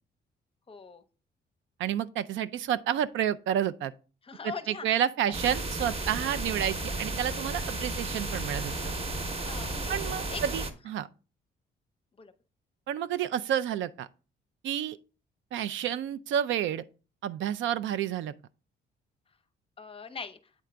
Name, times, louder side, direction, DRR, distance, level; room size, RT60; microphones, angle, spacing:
voice 1, 0.7-1.0 4.2-4.8 9.4-9.9 10.3-10.4 12.2-12.3 19.8-20.4, left 5 dB, 30° left, 0.6 m, -40 dB
voice 2, 1.8-3.9 4.4-8.9 9.9-11.1 12.9-14.1 14.6-15.0 15.5-16.8 17.2-18.3, right 10 dB, 75° right, 0.4 m, -30 dB
sound 1, 5.3-10.7, right 2 dB, 30° right, 0.9 m, -33 dB
8.3 x 3.8 x 3.3 m
cardioid pair, 90°, 20 cm